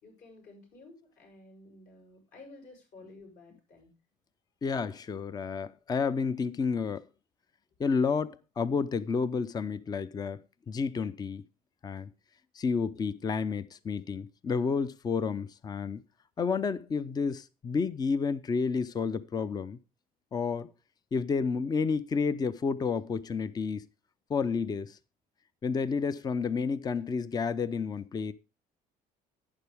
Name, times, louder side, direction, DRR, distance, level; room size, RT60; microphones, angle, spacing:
voice 1, 0.0-3.9, left 2 dB, 60° left, 6.5 m, -53 dB
voice 2, 4.6-7.0 7.8-10.4 10.7-11.4 11.8-12.1 12.6-16.0 16.4-19.8 20.3-20.7 21.1-23.9 24.3-25.0 25.6-28.3, left 5 dB, 25° left, 0.6 m, -30 dB
11.5 x 9.7 x 3.4 m
cardioid pair, 135°, 15 cm